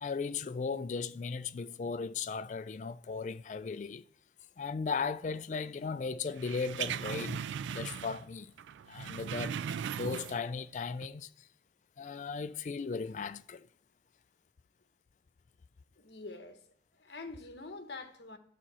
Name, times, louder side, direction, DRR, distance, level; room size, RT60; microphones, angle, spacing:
voice 1, 0.0-4.0 4.6-8.5 8.9-9.6 9.9-11.5 12.0-13.7, left 5 dB, 40° left, 0.3 m, -37 dB
sound 1, 6.4-8.3 8.6-10.6 10.9-11.1, right 8 dB, 85° right, 0.3 m, -38 dB
voice 2, 16.0-16.6 16.9-18.4, left 3 dB, 70° left, 1.0 m, -45 dB
12.5 x 4.2 x 6.1 m
head